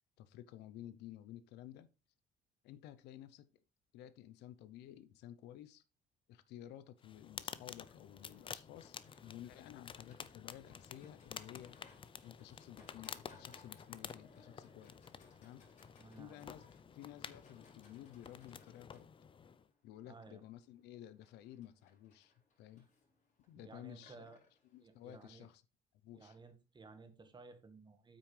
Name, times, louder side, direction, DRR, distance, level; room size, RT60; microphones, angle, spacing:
voice 1, 0.2-1.9 2.6-3.5 3.9-5.8 6.3-11.8 12.2-15.1 15.4-15.7 16.2-16.7 16.9-19.1 19.8-22.3 22.6-22.9 23.5-24.3 24.7-25.6 26.0-26.4, left 12 dB, 85° left, 0.7 m, -53 dB
sound 1, 7.0-19.7, left 7 dB, 30° left, 0.5 m, -51 dB
Livestock farm animals working animals, 7.5-25.6, left 3 dB, 45° left, 4.2 m, -67 dB
voice 2, 16.0-16.5 20.0-20.4 22.8-22.9 23.5-24.4 24.8-25.5 26.1-28.2, right 3 dB, 25° right, 1.6 m, -57 dB
8.3 x 6.1 x 3.3 m
cardioid pair, 110°, 17 cm